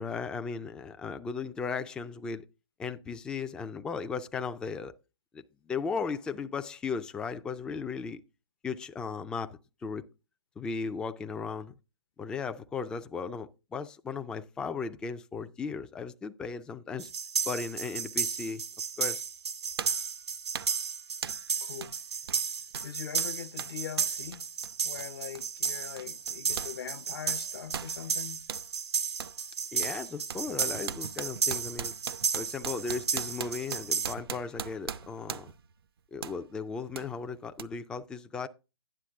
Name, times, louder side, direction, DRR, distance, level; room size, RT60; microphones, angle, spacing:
voice 1, 0.0-2.5 2.8-4.9 5.3-8.2 8.6-10.0 10.6-11.7 12.2-17.1 17.5-18.6 19.0-19.2 29.7-31.9 32.3-35.5 36.1-38.5, left 5 dB, 5° left, 0.3 m, -36 dB
sound 1, 17.0-34.1, right 5 dB, 80° right, 1.7 m, -33 dB
sound 2, 18.9-19.0 19.8-20.1 20.5-20.8 21.2-21.5 21.8-22.0 22.2-26.8 27.0-28.7 29.2-29.4 29.8-35.7 36.2-36.4 37.0-37.1 37.6-37.7, right 8 dB, 60° right, 0.6 m, -40 dB
voice 2, 21.6-22.0 22.8-24.4 24.8-28.4, left 9 dB, 55° left, 0.7 m, -41 dB
10.0 x 7.4 x 3.5 m
hypercardioid pair, 135°, 14 cm